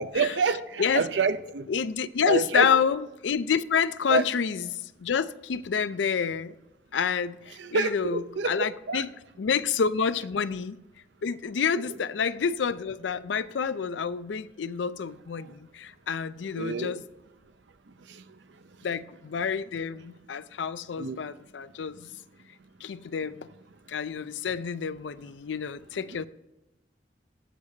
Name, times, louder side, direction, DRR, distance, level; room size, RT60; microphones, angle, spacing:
voice 1, 0.0-1.7 2.3-2.7 4.1-4.2 7.6-8.6 8.9-9.0 11.8-11.9 16.6-16.9 21.0-21.2, right 4 dB, 80° right, 0.6 m, -27 dB
voice 2, 1.7-6.5 6.9-9.1 9.4-10.8 11.2-17.0 18.8-22.1 22.8-23.5 23.9-26.3, left 6 dB, 85° left, 0.4 m, -28 dB
16.5 x 6.6 x 2.8 m
head